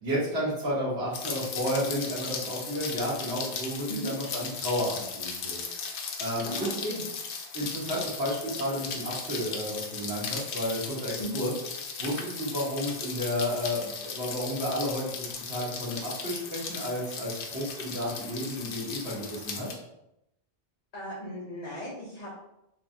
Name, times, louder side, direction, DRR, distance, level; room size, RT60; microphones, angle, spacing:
voice 1, 0.0-5.6 6.2-6.9 7.5-11.5 12.0-19.7, equal, 75° right, -7 dB, 1.6 m, -32 dB
Rain, 1.1-19.8, left 5 dB, 80° left, 0.9 m, -37 dB
voice 2, 6.4-7.0 11.2-11.4 20.9-22.3, equal, 40° left, -7 dB, 0.9 m, -37 dB
4.2 x 3.0 x 2.7 m, 0.84 s
omnidirectional pair, 1.1 m